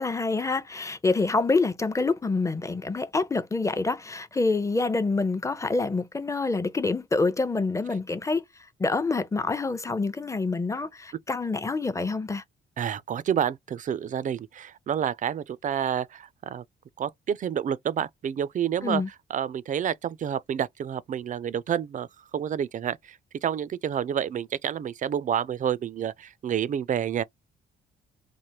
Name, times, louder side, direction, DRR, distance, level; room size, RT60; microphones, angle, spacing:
voice 1, 0.0-8.4 8.8-12.4 18.8-19.1, left 3 dB, 15° left, 0.5 m, -26 dB
voice 2, 12.8-16.6 17.0-19.0 19.3-22.1 22.3-27.2, right 9 dB, 40° right, 0.4 m, -29 dB
3.2 x 2.1 x 2.8 m
cardioid pair, 90°, 20 cm